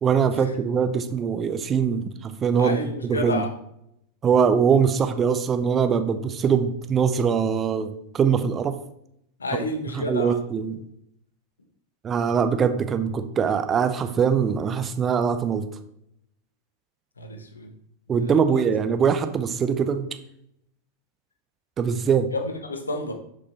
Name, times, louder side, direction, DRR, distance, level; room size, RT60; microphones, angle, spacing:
voice 1, 0.0-3.5 4.2-8.8 9.5-9.6 9.9-10.8 12.0-15.7 18.1-20.1 21.8-22.3, right 6 dB, 25° right, 9 dB, 0.6 m, -22 dB
voice 2, 2.6-3.5 9.4-10.4 17.2-17.7 18.2-18.6 22.3-23.1, left 2 dB, 75° left, 5 dB, 1.1 m, -30 dB
6.9 x 5.1 x 4.4 m, 0.76 s
figure-of-eight pair, 90°, 0 cm